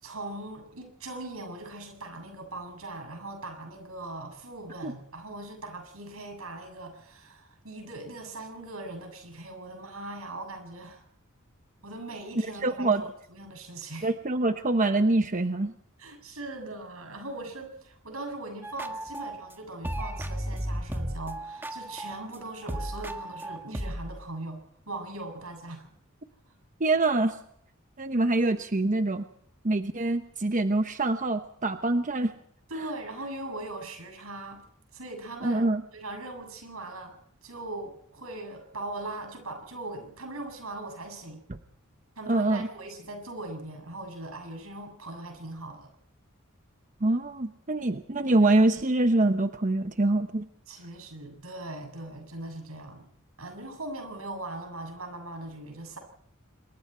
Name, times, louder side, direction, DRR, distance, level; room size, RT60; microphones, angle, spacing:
voice 1, 0.0-11.0 11.8-14.1 16.0-25.9 32.7-34.6 34.9-35.7 35.9-37.2 37.4-41.4 42.2-45.9 50.7-53.1 53.4-56.0, right 2 dB, 85° right, 5 dB, 7.7 m, -40 dB
voice 2, 12.6-13.0 14.0-15.7 26.8-27.4 28.0-29.2 29.6-32.3 35.4-35.8 41.5-41.6 42.3-42.7 47.0-50.5, right 2 dB, 40° right, 8 dB, 0.9 m, -25 dB
sound 1, 18.6-19.5 19.8-24.2, right 1 dB, 10° right, 1.7 m, -35 dB
26.5 x 23.5 x 4.5 m, 0.65 s
head